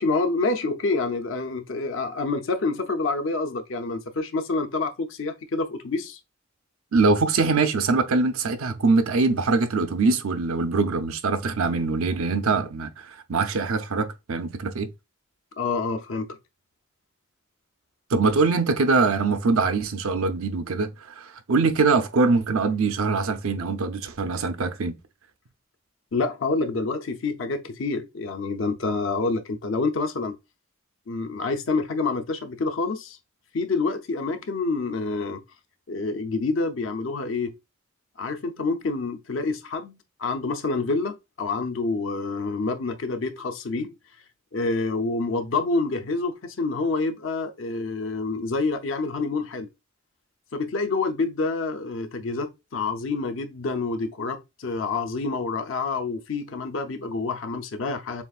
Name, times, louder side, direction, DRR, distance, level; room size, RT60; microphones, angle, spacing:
voice 1, 0.0-6.2 15.6-16.3 26.1-30.4 31.1-33.2 33.5-35.4 35.9-37.5 38.2-43.9 44.5-49.7 50.5-58.2, left 3 dB, 65° left, 0.6 m, -27 dB
voice 2, 6.9-14.9 18.1-25.0, right 4 dB, 90° right, 0.6 m, -23 dB
6.9 x 2.4 x 2.4 m
head